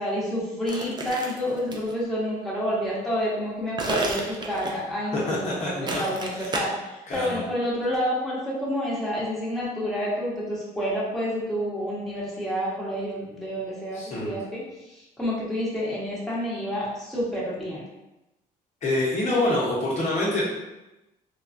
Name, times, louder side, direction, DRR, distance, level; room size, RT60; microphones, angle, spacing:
voice 1, 0.0-17.9, equal, ahead, -8 dB, 1.1 m, -29 dB
sound 1, 0.7-1.9 3.8-4.9 5.9-6.6, right 2 dB, 25° right, 0.4 m, -31 dB
voice 2, 5.3-5.9 7.1-7.4 13.9-14.3 18.8-20.4, left 2 dB, 45° left, -5 dB, 0.8 m, -26 dB
3.3 x 2.2 x 2.5 m, 0.98 s
cardioid pair, 110°, 17 cm